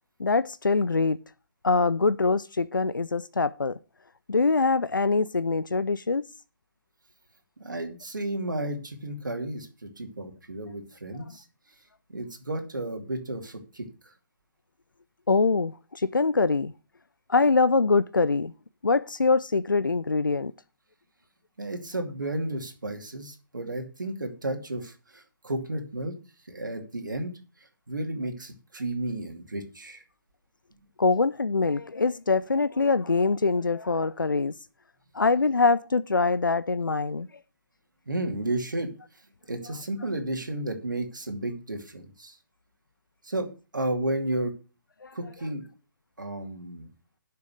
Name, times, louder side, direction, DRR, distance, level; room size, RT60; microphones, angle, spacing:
voice 1, 0.2-1.2 1.6-3.8 4.3-6.2 15.3-16.7 17.3-18.5 18.8-20.5 31.0-34.5 35.1-37.3 45.0-45.1, left 4 dB, 80° left, 0.5 m, -24 dB
voice 2, 7.6-11.4 12.1-14.1 21.6-26.1 26.5-27.3 27.6-30.0 38.1-38.9 39.5-42.4 43.2-44.5 45.1-45.6 46.2-46.9, right 1 dB, 70° right, 2.5 m, -33 dB
9.6 x 6.9 x 6.5 m
figure-of-eight pair, 135°, 11 cm